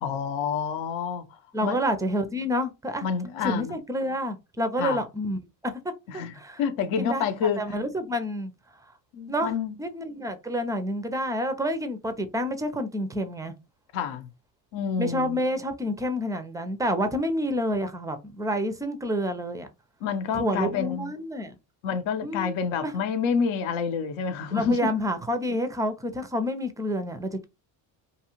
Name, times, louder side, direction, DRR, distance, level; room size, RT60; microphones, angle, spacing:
voice 1, 0.0-1.8 3.0-3.8 4.8-5.0 6.1-7.8 9.1-9.8 13.9-14.3 14.7-15.4 20.0-21.1 21.8-24.9, left 6 dB, 65° left, 0.7 m, -28 dB
voice 2, 1.5-3.0 3.4-5.8 6.1-6.6 7.0-7.2 7.6-8.5 9.3-9.5 9.8-13.5 15.0-19.7 20.3-21.5 22.2-22.5 22.8-23.0 24.5-27.5, equal, 10° right, 0.3 m, -28 dB
2.7 x 2.3 x 2.9 m
supercardioid pair, 75°, 50 cm